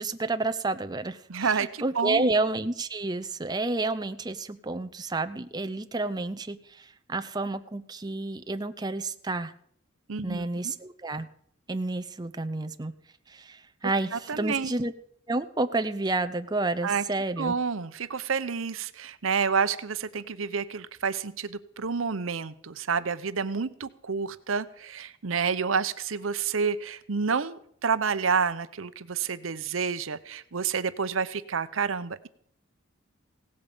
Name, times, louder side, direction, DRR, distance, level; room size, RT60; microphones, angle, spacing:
voice 1, 0.0-9.5 10.2-11.3 11.7-12.9 13.3-14.9 15.3-17.6, right 2 dB, 20° right, 9 dB, 0.6 m, -30 dB
voice 2, 1.3-2.3 10.1-10.7 14.1-14.7 16.8-17.0 17.4-32.3, right 5 dB, 80° right, 13 dB, 0.8 m, -29 dB
17.0 x 8.6 x 7.1 m, 0.64 s
head